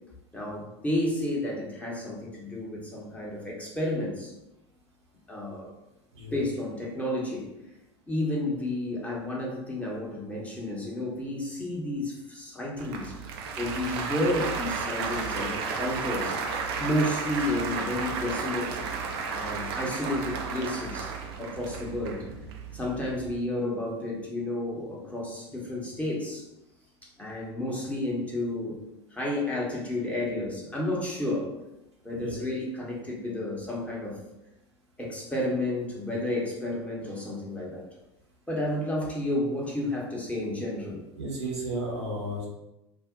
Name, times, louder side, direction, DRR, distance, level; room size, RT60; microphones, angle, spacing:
voice 1, 0.3-4.3 5.3-5.7 6.3-7.5 8.1-13.1 13.6-16.4 16.8-18.8 19.3-21.1 21.4-22.2 22.7-26.4 27.2-28.8 29.1-31.6 32.0-34.2 35.0-37.9 38.5-41.1, left 1 dB, 10° left, -3 dB, 0.9 m, -31 dB
Applause, 12.8-23.4, right 5 dB, 60° right, 0.4 m, -33 dB
voice 2, 41.2-42.5, right 1 dB, 80° right, -3 dB, 0.9 m, -33 dB
2.5 x 2.0 x 3.6 m, 0.92 s
figure-of-eight pair, 80°, 14 cm